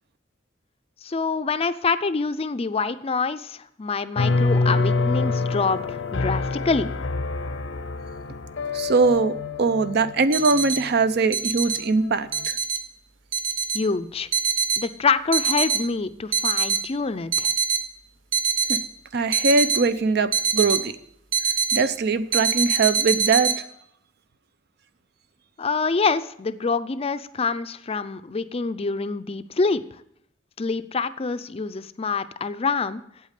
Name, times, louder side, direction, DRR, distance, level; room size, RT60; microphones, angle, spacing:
voice 1, 1.0-6.9 13.7-14.3 14.8-17.5 25.6-29.8 30.6-33.0, left 4 dB, 30° left, 12 dB, 0.5 m, -26 dB
sound 1, 4.2-11.4 11.8-12.5, left 3 dB, 80° left, 0.7 m, -26 dB
voice 2, 8.7-12.6 18.7-18.8 19.1-20.9 21.7-23.7, right 4 dB, 60° right, 13 dB, 0.6 m, -22 dB
sound 2, 10.3-10.8 11.3-11.8 12.3-12.8 13.3-13.8 14.3-14.8 15.3-15.8 16.3-16.8 17.3-17.8 18.3-18.8 19.3-19.8 20.3-20.8 21.3-21.8 22.3-23.5, right 6 dB, 90° right, 1.0 m, -23 dB
8.4 x 8.3 x 6.6 m, 0.74 s
head